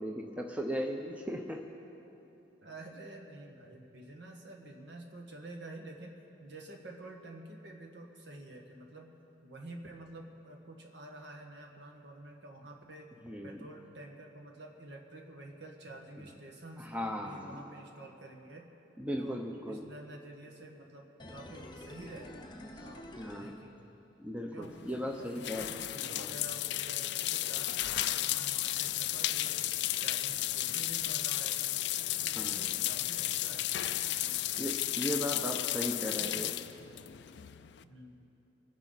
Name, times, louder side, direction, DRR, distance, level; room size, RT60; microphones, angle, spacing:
voice 1, 0.0-1.6 13.2-13.6 16.8-17.6 19.0-19.8 23.2-23.5 24.2-25.7 26.1-26.3 32.4-32.8 34.6-36.5, equal, 5° right, 1 dB, 0.7 m, -37 dB
voice 2, 2.6-9.1 9.4-13.1 13.4-16.9 17.2-18.7 19.2-22.5 22.8-23.9 24.5-29.6 30.0-33.7 34.2-34.5 35.9-36.4 37.8-38.2, right 2 dB, 60° right, 1 dB, 1.7 m, -49 dB
sound 1, 21.2-24.3 24.6-24.7, left 1 dB, 25° left, 0.8 m, -49 dB
sound 2, 24.6-37.8, left 14 dB, 60° left, 0.4 m, -34 dB
25.5 x 10.5 x 4.1 m, 3.0 s
head